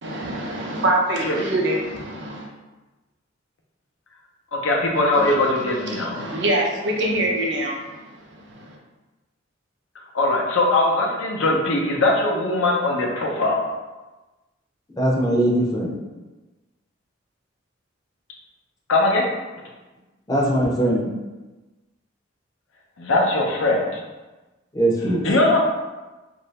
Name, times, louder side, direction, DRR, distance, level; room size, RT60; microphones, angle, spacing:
voice 1, 0.0-2.5 5.1-5.3 5.9-8.8, right 1 dB, 60° right, -2 dB, 0.6 m, -25 dB
voice 2, 4.6-6.1 10.1-13.7 18.9-19.2 23.0-24.0 25.2-25.6, left 2 dB, 85° left, 0 dB, 0.6 m, -20 dB
voice 3, 14.9-16.0 20.3-21.1 24.7-25.3, right 1 dB, 20° left, -3 dB, 0.5 m, -21 dB
2.7 x 2.6 x 3.2 m, 1.2 s
head